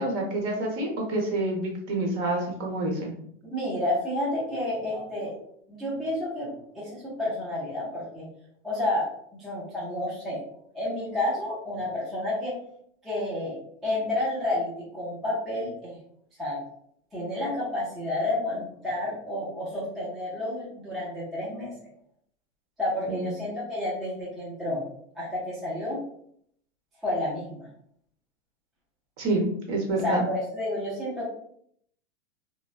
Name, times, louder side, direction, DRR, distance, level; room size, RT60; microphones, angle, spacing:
voice 1, 0.0-3.1 23.1-23.3 29.2-30.2, right 2 dB, 35° right, 0 dB, 1.0 m, -28 dB
voice 2, 3.5-5.3 5.7-8.3 8.6-9.1 9.4-10.4 10.7-12.6 13.0-13.6 13.8-16.0 16.4-16.6 17.1-21.7 22.8-24.8 25.1-26.0 27.0-27.7 30.0-31.3, left 1 dB, ahead, -8 dB, 0.3 m, -30 dB
3.4 x 2.1 x 2.3 m, 0.67 s
hypercardioid pair, 135°, 41 cm